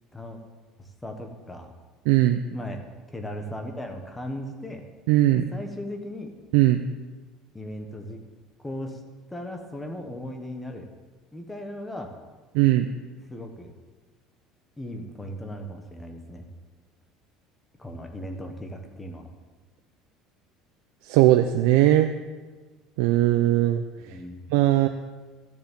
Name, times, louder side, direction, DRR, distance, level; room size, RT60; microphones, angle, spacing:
voice 1, 0.8-1.7 2.5-2.8 3.1-4.8 5.3-6.3 7.5-8.2 8.6-9.0 9.3-10.9 11.3-12.1 13.3-13.7 14.8-16.4 17.8-19.3 24.1-24.4, left 1 dB, 5° left, 4 dB, 1.2 m, -37 dB
voice 2, 2.1-2.4 5.1-5.4 6.5-6.8 12.5-12.9 21.0-22.1 23.0-24.2 24.5-24.9, right 14 dB, 75° right, 7 dB, 0.6 m, -19 dB
13.5 x 7.3 x 7.3 m, 1.3 s
cardioid pair, 180°, 0 cm